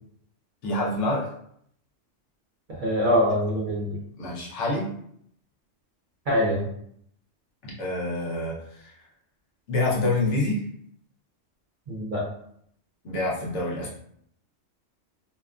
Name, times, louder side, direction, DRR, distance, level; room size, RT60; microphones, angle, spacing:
voice 1, 0.6-1.3 4.2-4.9 7.6-8.9 9.7-10.6 13.0-13.9, left 2 dB, 70° left, -5 dB, 1.1 m, -27 dB
voice 2, 2.7-3.9 6.3-6.7 11.9-12.2, equal, 50° right, -5 dB, 0.7 m, -24 dB
2.8 x 2.2 x 2.3 m, 0.69 s
omnidirectional pair, 1.3 m